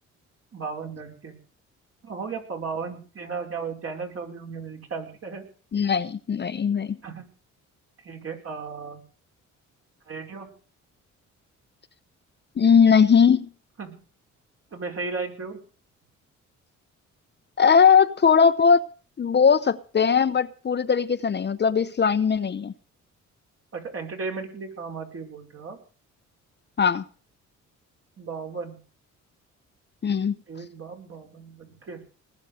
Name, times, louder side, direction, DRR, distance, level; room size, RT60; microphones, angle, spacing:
voice 1, 0.5-1.4 2.0-5.4 7.0-7.3 8.0-9.0 10.1-10.5 13.8-14.0 14.7-15.6 23.7-25.8 28.2-28.8 30.5-32.0, right 5 dB, 50° right, 5.2 m, -35 dB
voice 2, 5.7-7.0 12.6-13.5 17.6-18.8 19.2-22.7 26.8-27.0 30.0-30.3, left 6 dB, 35° left, 0.9 m, -19 dB
19.5 x 7.2 x 7.9 m
cardioid pair, 90°, 30 cm